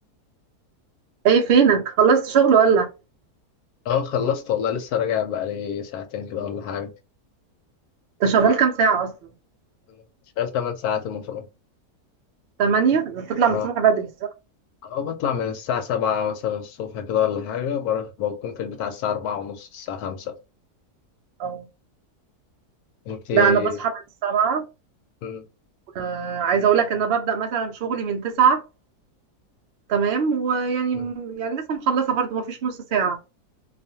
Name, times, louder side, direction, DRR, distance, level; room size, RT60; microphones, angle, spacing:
voice 1, 1.2-2.9 8.2-9.1 12.6-14.3 21.4-21.7 23.3-23.9 24.2-24.6 25.9-28.6 29.9-33.2, right 6 dB, 75° right, 0.5 m, -20 dB
voice 2, 3.9-6.9 9.9-10.0 10.4-11.5 13.5-13.7 14.8-20.3 23.1-23.8 25.2-25.4 30.9-31.1, left 8 dB, 75° left, 1.0 m, -27 dB
2.4 x 2.4 x 2.7 m
omnidirectional pair, 1.7 m